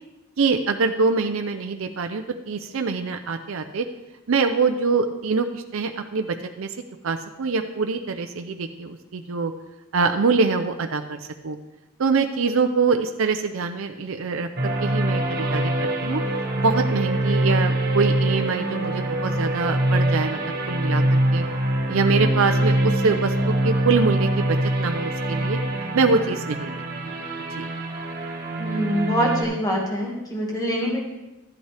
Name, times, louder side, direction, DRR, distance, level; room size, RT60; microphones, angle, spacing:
voice 1, 0.4-3.9 4.3-6.7 7.0-9.5 9.9-11.6 12.0-16.2 16.6-20.4 20.7-21.5 21.9-25.6 25.9-27.1 27.6-27.7, right 4 dB, 65° right, 6 dB, 0.5 m, -24 dB
sound 1, 14.6-29.4, right 1 dB, 45° right, 1.5 m, -24 dB
voice 2, 28.6-31.0, equal, 15° left, -2 dB, 1.7 m, -24 dB
12.5 x 8.0 x 3.3 m, 1.0 s
head